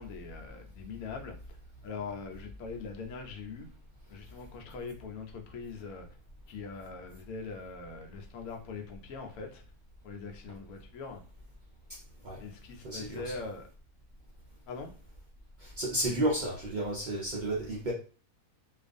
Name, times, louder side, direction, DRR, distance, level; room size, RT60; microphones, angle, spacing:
voice 1, 0.0-1.6 1.8-3.7 4.1-6.1 6.5-9.6 10.0-11.2 12.4-13.7 14.7-14.9, left 4 dB, 75° left, 3 dB, 1.0 m, -42 dB
voice 2, 12.8-13.2 15.6-17.9, right 1 dB, 75° right, -4 dB, 0.4 m, -32 dB
2.4 x 2.4 x 2.5 m, 0.38 s
omnidirectional pair, 1.5 m